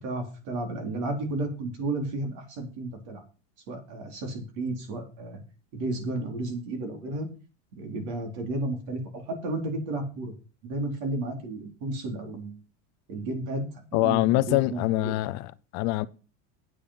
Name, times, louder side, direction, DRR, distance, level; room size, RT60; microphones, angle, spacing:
voice 1, 0.0-3.2 3.7-5.4 5.7-7.3 7.8-10.3 10.6-12.6 13.1-13.7 13.9-15.1, right 2 dB, 60° right, 4.0 m, -32 dB
voice 2, 13.9-16.1, left 19 dB, 45° left, 0.6 m, -24 dB
9.4 x 8.6 x 5.7 m
cardioid pair, 165°, 38 cm